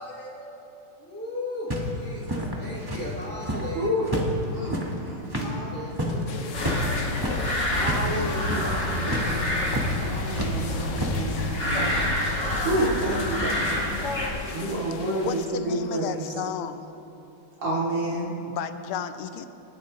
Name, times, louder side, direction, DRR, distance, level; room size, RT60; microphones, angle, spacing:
voice 1, 0.0-3.9 4.2-4.6 5.3-6.9, left 1 dB, 5° left, 3.4 m, -37 dB
sound 1, 1.7-3.7 4.0-8.1 8.4-8.7 9.1-9.3 9.7-9.9 10.3-11.1, equal, 10° right, 1.4 m, -30 dB
voice 2, 3.7-4.1 4.5-5.6 7.5-9.4 10.0-13.8 14.5-16.3 17.6-18.3, right 1 dB, 60° right, 3.4 m, -29 dB
sound 2, 6.3-15.5, left 5 dB, 55° left, 0.9 m, -36 dB
sound 3, 6.5-14.3, left 1 dB, 30° left, 2.4 m, -28 dB
voice 3, 15.2-16.9 18.5-19.5, left 8 dB, 90° left, 1.6 m, -33 dB
29.0 x 12.0 x 3.2 m
omnidirectional pair, 2.3 m